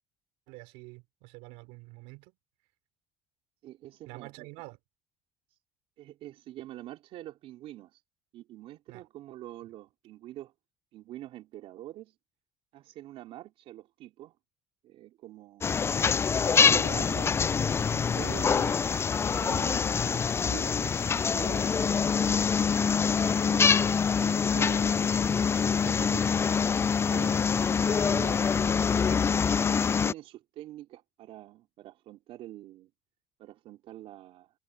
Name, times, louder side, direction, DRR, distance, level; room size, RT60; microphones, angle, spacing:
voice 1, 0.5-2.3 4.1-4.8 8.9-9.0 27.9-28.1, right 24 dB, 85° right, 4.7 m, -47 dB
voice 2, 3.6-4.5 6.0-8.0 8.3-10.5 10.9-12.2 12.7-14.4 14.8-15.7 16.6-18.9 19.4-22.2 22.7-23.7 24.1-26.4 27.1-28.4 29.0-32.9 33.4-34.5, right 14 dB, 70° right, 4.1 m, -45 dB
sound 1, 15.6-30.1, left 6 dB, 25° left, 0.4 m, -25 dB
supercardioid pair, 95°, 10 cm